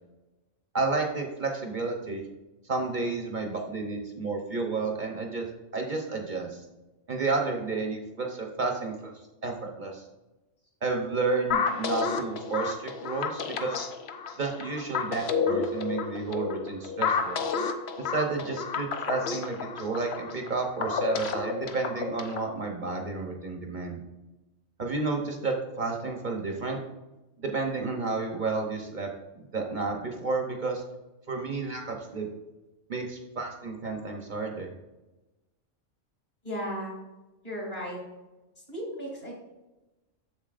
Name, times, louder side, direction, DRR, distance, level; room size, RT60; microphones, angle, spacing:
voice 1, 0.7-2.2 2.6-5.5 5.7-6.6 7.1-9.1 9.4-10.1 10.8-13.9 14.4-17.4 18.0-24.0 24.8-26.8 27.4-29.1 29.3-30.8 31.3-32.3 32.9-34.7, right 3 dB, 45° right, 2 dB, 0.9 m, -31 dB
sound 1, 11.5-22.5, left 5 dB, 65° left, 0.9 m, -31 dB
voice 2, 36.4-37.0 37.4-38.0 38.6-39.3, equal, 40° left, -2 dB, 2.6 m, -35 dB
7.4 x 7.0 x 2.5 m, 1.1 s
omnidirectional pair, 1.3 m